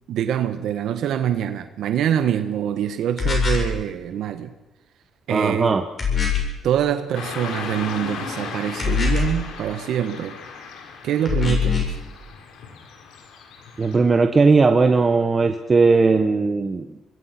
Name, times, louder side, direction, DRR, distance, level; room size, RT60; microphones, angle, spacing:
voice 1, 0.1-4.5 5.3-5.8 6.6-10.4 11.0-11.9, right 10 dB, 75° right, 9 dB, 1.5 m, -24 dB
sound 1, 3.2-3.8 6.0-6.6 8.8-9.5 11.3-12.0, left 5 dB, 35° left, 7.9 m, -22 dB
voice 2, 5.3-5.8 13.8-16.9, right 4 dB, 35° right, 6 dB, 1.5 m, -18 dB
Car passing by / Traffic noise roadway noise, 7.1-14.0, left 6 dB, 90° left, 4.1 m, -36 dB
26.0 x 20.5 x 6.1 m, 0.95 s
cardioid pair, 90°, 0 cm